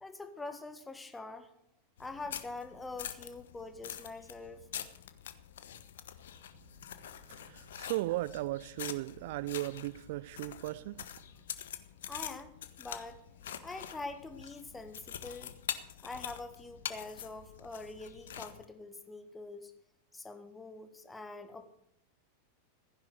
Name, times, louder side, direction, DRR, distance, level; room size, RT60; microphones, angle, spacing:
voice 1, 0.0-1.5 2.0-4.7 12.1-12.5 12.8-13.2 13.6-15.5 16.0-19.7 20.1-21.7, left 3 dB, 10° left, 1.6 m, -44 dB
sound 1, 2.0-18.6, left 10 dB, 60° left, 1.0 m, -45 dB
voice 2, 7.3-11.0, right 18 dB, 50° right, 0.4 m, -36 dB
15.0 x 10.5 x 6.6 m
figure-of-eight pair, 90°, 0 cm